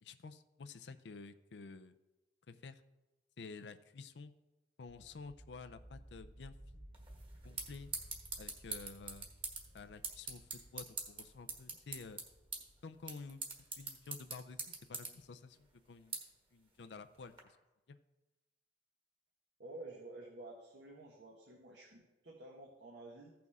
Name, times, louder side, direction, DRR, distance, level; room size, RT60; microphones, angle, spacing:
voice 1, 0.0-1.9 2.5-2.8 3.4-4.3 4.8-6.9 7.4-7.9 8.4-9.3 9.7-12.2 12.8-13.4 13.8-15.6 15.9-16.2 16.5-17.6 17.9-18.0, left 4 dB, 80° left, 10 dB, 0.5 m, -51 dB
sound 1, 4.9-15.6, equal, ahead, 0.9 m, -58 dB
sound 2, 6.9-17.4, right 4 dB, 30° right, 1.5 m, -46 dB
voice 2, 19.6-23.3, right 2 dB, 85° right, -2 dB, 1.4 m, -51 dB
15.0 x 6.0 x 3.6 m, 1.0 s
head